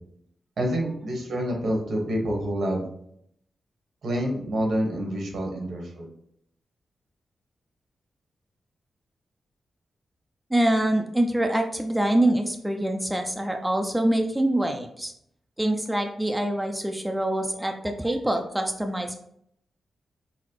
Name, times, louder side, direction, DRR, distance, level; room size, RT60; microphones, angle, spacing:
voice 1, 0.6-2.8 4.0-6.1, equal, 80° right, 0 dB, 1.2 m, -27 dB
voice 2, 10.5-15.1 15.6-19.2, right 1 dB, 10° right, 4 dB, 0.4 m, -25 dB
5.8 x 2.0 x 3.0 m, 0.71 s
cardioid pair, 95°, 0 cm